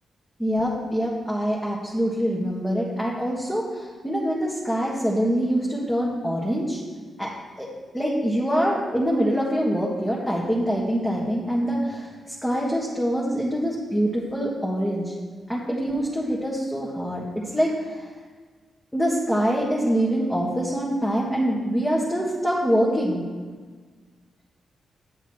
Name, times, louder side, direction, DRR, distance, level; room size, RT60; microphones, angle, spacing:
voice 1, 0.4-6.8 7.2-7.3 7.6-7.7 7.9-15.1 15.5-18.1 18.9-23.2, equal, 5° left, -5 dB, 1.7 m, -24 dB
9.3 x 7.9 x 3.2 m, 1.5 s
cardioid pair, 80°, 0 cm